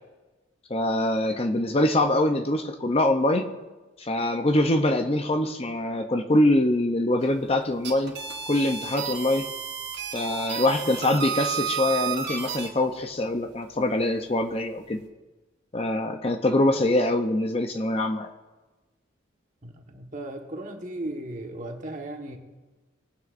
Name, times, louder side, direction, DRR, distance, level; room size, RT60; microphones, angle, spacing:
voice 1, 0.7-3.5 4.0-8.2 8.5-9.5 10.1-15.0 15.7-18.3, left 1 dB, 30° left, 6 dB, 0.6 m, -24 dB
sound 1, 7.7-12.7, right 8 dB, 60° right, 1.7 m, -32 dB
voice 2, 19.6-22.4, right 1 dB, 40° right, 3 dB, 1.3 m, -36 dB
20.5 x 9.4 x 2.5 m, 1.2 s
head